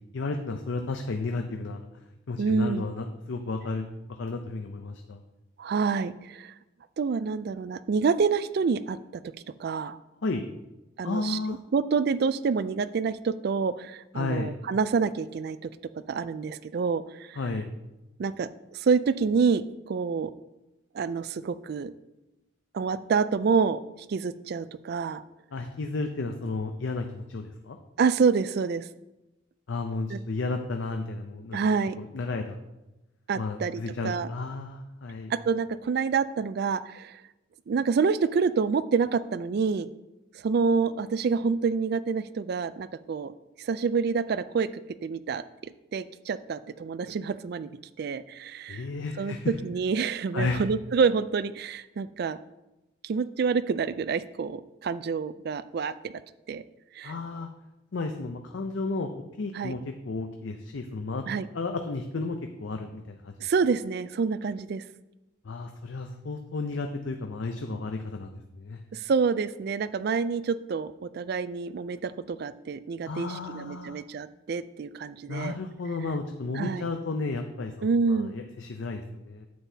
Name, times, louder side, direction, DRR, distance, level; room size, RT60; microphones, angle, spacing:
voice 1, 0.1-1.8 2.3-5.2 10.2-10.5 11.0-11.6 14.1-14.5 17.4-17.7 25.5-27.8 29.7-31.6 32.0-32.6 33.4-35.3 48.7-49.5 50.3-50.6 57.0-57.5 57.9-59.1 59.4-61.3 61.5-63.5 65.4-68.8 73.1-74.0 75.3-79.5, left 3 dB, 70° left, 5 dB, 0.5 m, -33 dB
voice 2, 2.4-2.8 5.6-6.5 7.0-9.0 9.6-10.0 11.0-15.7 16.1-17.4 18.2-20.3 20.9-21.9 22.7-23.8 24.1-25.2 28.0-28.9 30.1-30.2 31.5-32.0 33.3-34.3 35.3-37.2 37.7-39.9 40.4-43.3 43.6-44.7 45.0-47.7 48.0-48.8 49.2-52.4 53.0-56.1 56.5-56.6 56.9-57.1 59.5-59.8 61.3-61.5 63.4-64.8 68.9-75.5 76.5-76.9 77.8-78.4, right 5 dB, 55° right, 15 dB, 0.3 m, -27 dB
9.4 x 8.0 x 2.8 m, 0.98 s
head